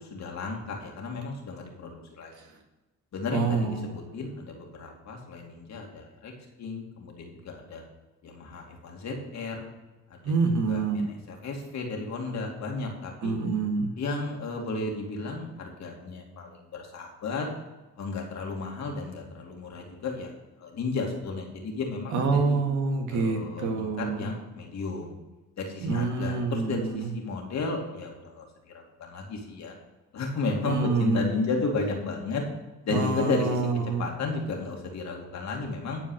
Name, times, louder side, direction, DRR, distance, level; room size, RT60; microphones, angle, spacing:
voice 1, 0.0-2.3 3.1-6.3 6.6-7.8 8.2-9.7 10.1-13.3 14.0-17.5 18.0-20.3 20.6-22.6 23.1-25.1 25.6-28.7 29.0-29.7 30.1-32.4 32.8-33.6 34.0-36.0, left 3 dB, 65° left, 1 dB, 2.5 m, -33 dB
voice 2, 3.3-4.0 10.2-11.0 13.2-13.9 22.1-24.3 25.8-27.1 30.6-31.3 32.9-34.1, right 4 dB, 75° right, 2 dB, 2.0 m, -27 dB
11.0 x 4.7 x 6.5 m, 1.1 s
cardioid pair, 90°, 30 cm